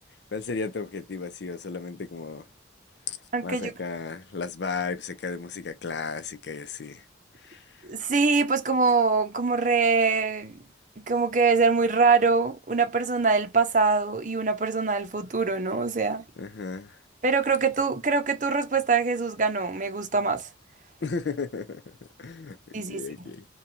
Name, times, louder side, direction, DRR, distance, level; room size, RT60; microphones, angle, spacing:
voice 1, 0.3-2.4 3.1-3.2 3.4-7.0 7.4-7.6 16.4-17.0 21.0-22.6 22.9-23.5, left 4 dB, 70° left, 0.5 m, -34 dB
voice 2, 3.3-3.7 7.8-10.5 11.0-16.2 17.2-20.5 22.7-23.0, right 4 dB, 40° right, 0.7 m, -24 dB
2.6 x 2.3 x 2.8 m
head